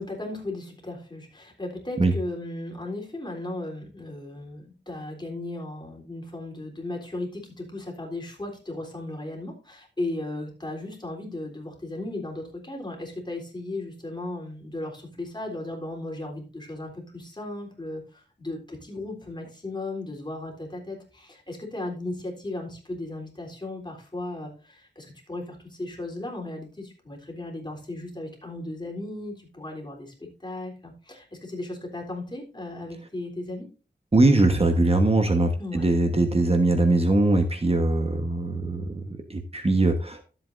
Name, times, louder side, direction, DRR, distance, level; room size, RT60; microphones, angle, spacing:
voice 1, 0.0-33.7 35.6-35.9, left 2 dB, 25° left, 0 dB, 3.6 m, -36 dB
voice 2, 34.1-40.2, right 2 dB, 35° right, 5 dB, 1.3 m, -21 dB
13.0 x 7.8 x 2.6 m, 0.36 s
wide cardioid pair, 80°, 18 cm